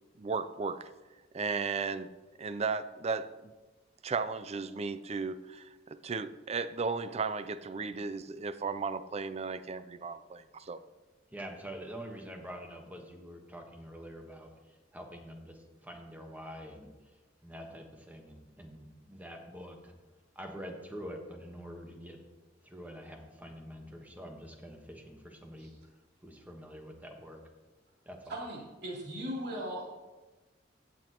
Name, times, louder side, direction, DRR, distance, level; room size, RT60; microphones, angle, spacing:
voice 1, 0.2-0.9 1.3-2.1 2.4-3.5 4.0-10.8, right 4 dB, 35° right, 13 dB, 0.4 m, -35 dB
voice 2, 11.3-14.5 14.9-16.9 17.4-19.9 20.3-22.2 22.6-25.7 26.2-27.4 28.0-28.3, equal, 10° right, 2 dB, 1.3 m, -46 dB
voice 3, 28.3-29.9, equal, 65° right, -4 dB, 3.3 m, -38 dB
16.0 x 7.1 x 3.0 m, 1.2 s
head